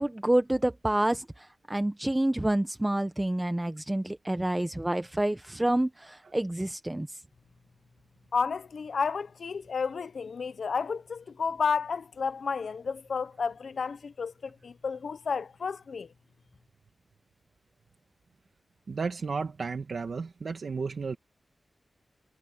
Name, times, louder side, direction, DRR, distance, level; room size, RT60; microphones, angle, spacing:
voice 1, 0.0-7.2, right 1 dB, 15° right, 0.7 m, -28 dB
voice 2, 8.3-16.1, left 5 dB, 70° left, 0.7 m, -31 dB
voice 3, 18.9-21.2, right 4 dB, 65° right, 1.5 m, -33 dB
wide cardioid pair, 115°, 0 cm